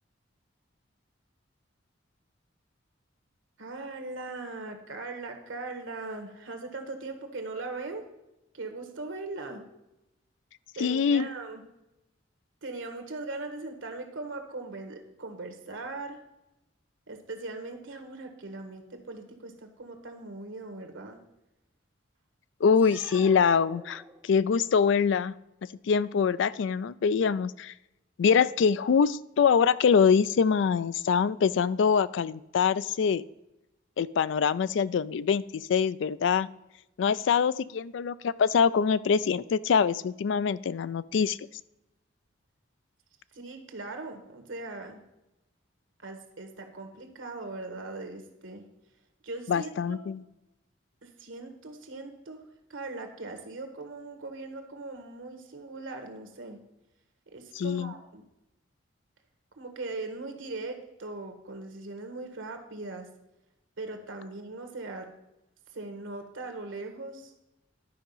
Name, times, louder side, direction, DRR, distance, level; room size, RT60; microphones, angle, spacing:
voice 1, 3.6-8.1 8.5-9.6 10.7-11.6 12.6-16.2 17.1-21.2 43.3-45.0 46.0-48.6 49.2-50.0 51.0-52.4 52.7-56.6 57.3-58.2 59.6-63.1 63.8-65.1 65.7-67.3, right 3 dB, 90° right, 5 dB, 1.5 m, -40 dB
voice 2, 10.8-11.3 22.6-25.3 25.9-27.7 28.2-33.2 34.0-36.5 37.0-41.4 49.5-50.2 57.6-57.9, left 6 dB, 70° left, 17 dB, 0.3 m, -24 dB
sound 1, 22.7-24.6, right 2 dB, 10° right, 0.8 m, -47 dB
11.5 x 5.0 x 5.5 m, 0.91 s
head